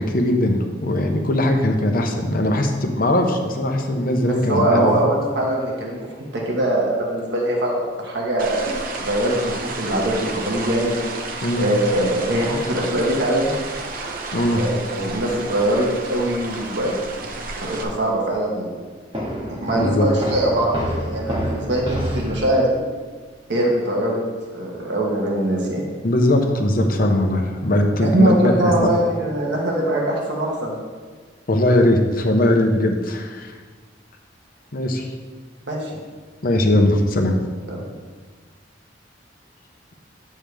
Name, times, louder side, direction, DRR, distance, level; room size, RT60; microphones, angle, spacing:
voice 1, 0.0-5.0 11.4-11.6 14.3-14.6 19.7-20.1 26.0-28.3 28.8-28.9 31.5-33.5 34.7-35.1 36.4-37.4, left 1 dB, 55° left, 4 dB, 0.8 m, -19 dB
voice 2, 4.2-10.9 11.5-13.5 14.5-16.9 17.4-18.8 19.5-22.8 23.5-24.2 24.5-25.9 28.0-30.8 35.7-36.0 37.7-37.9, right 1 dB, 70° right, -2 dB, 1.4 m, -22 dB
sound 1, 8.4-17.8, right 3 dB, 55° right, 0.9 m, -31 dB
Walk footsteps, 19.1-22.4, equal, 30° right, 1.8 m, -27 dB
9.4 x 7.4 x 3.5 m, 1.5 s
head